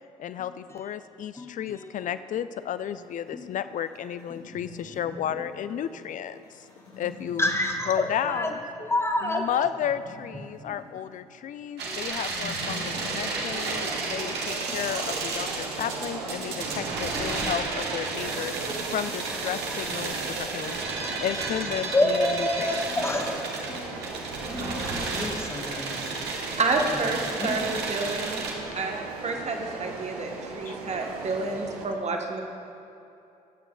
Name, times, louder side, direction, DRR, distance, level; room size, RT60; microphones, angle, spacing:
voice 1, 0.2-6.7 7.0-7.5 7.9-8.6 9.2-18.5 18.9-22.8 30.7-30.8, left 9 dB, 40° left, 14 dB, 0.4 m, -33 dB
voice 2, 1.4-1.9 3.3-3.5 7.4-8.5 8.8-9.5 10.6-10.8 11.8-12.0 13.5-14.0 14.7-14.8 18.7-18.9 21.9-23.3 23.7-26.3 27.2-27.6 29.4-29.6, left 1 dB, 15° left, 2 dB, 1.3 m, -29 dB
sound 1, 2.6-13.3, left 2 dB, 80° left, 1.6 m, -45 dB
sound 2, 11.8-28.5, right 3 dB, 60° right, 1.3 m, -33 dB
sound 3, 12.6-31.9, right 4 dB, 75° right, 0.8 m, -38 dB
voice 3, 26.6-32.4, right 3 dB, 35° right, 2 dB, 1.2 m, -29 dB
19.5 x 9.0 x 2.3 m, 2.7 s
figure-of-eight pair, 40°, 19 cm